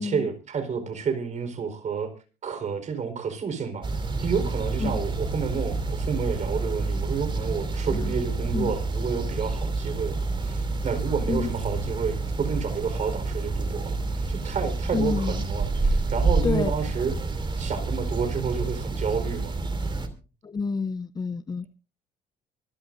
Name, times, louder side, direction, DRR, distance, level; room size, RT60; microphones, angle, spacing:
voice 1, 0.0-2.1 2.4-3.9 4.2-17.1 17.6-19.6, right 6 dB, 45° right, 9 dB, 4.4 m, -30 dB
sound 1, 3.8-20.1, right 3 dB, 30° right, 2.9 m, -28 dB
voice 2, 14.9-15.4 16.4-16.7 20.4-21.7, left 5 dB, 25° left, 14 dB, 0.7 m, -29 dB
25.0 x 13.0 x 2.6 m, 0.34 s
cardioid pair, 110°, 17 cm